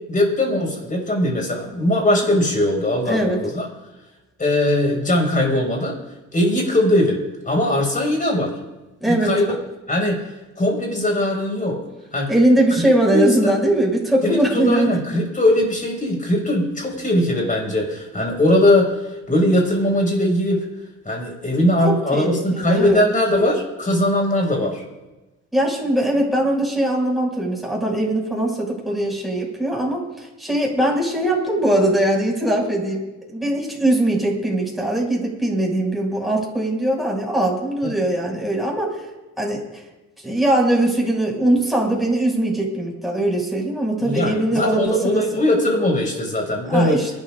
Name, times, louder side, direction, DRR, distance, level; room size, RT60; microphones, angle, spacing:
voice 1, 0.1-3.7 4.4-6.0 6.3-7.2 7.5-8.5 9.2-9.5 9.9-10.2 10.6-11.8 12.1-12.3 13.1-13.5 14.2-18.9 19.3-20.6 21.0-24.8 37.8-37.9 44.0-47.0, left 1 dB, 25° left, 1 dB, 5.8 m, -20 dB
voice 2, 3.0-3.4 9.0-9.5 12.3-14.9 21.8-23.0 25.5-33.0 33.3-38.9 39.4-39.6 40.2-45.4 46.7-47.1, right 1 dB, ahead, -3 dB, 6.3 m, -21 dB
28.0 x 12.5 x 2.6 m, 1.1 s
cardioid pair, 90°, 30 cm